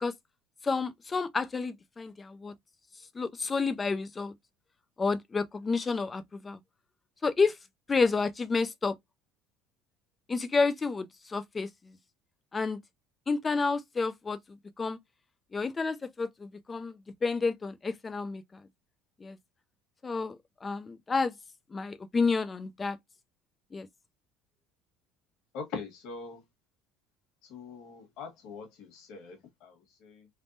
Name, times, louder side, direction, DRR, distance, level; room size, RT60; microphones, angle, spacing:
voice 1, 0.6-2.5 3.1-4.3 5.0-6.6 7.2-7.6 7.9-8.9 10.3-12.0 12.5-12.8 13.3-15.0 15.5-18.6 19.2-19.4 20.0-21.3 21.7-23.0 23.7-23.9, left 4 dB, 20° left, 0.4 m, -30 dB
voice 2, 25.5-26.4 27.4-30.3, left 5 dB, 65° left, 1.3 m, -43 dB
3.4 x 2.1 x 2.5 m
cardioid pair, 140°, 0 cm